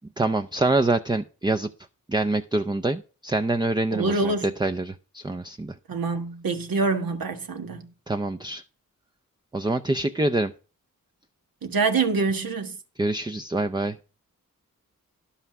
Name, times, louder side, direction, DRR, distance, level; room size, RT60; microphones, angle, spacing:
voice 1, 0.2-1.7 2.1-4.3 4.6-5.7 8.1-8.6 9.5-10.5 13.0-14.0, right 2 dB, 15° right, 0.5 m, -25 dB
voice 2, 3.9-4.5 5.9-7.9 11.6-12.8, right 4 dB, 80° right, 1.5 m, -25 dB
11.0 x 5.7 x 5.9 m
cardioid pair, 65°, 34 cm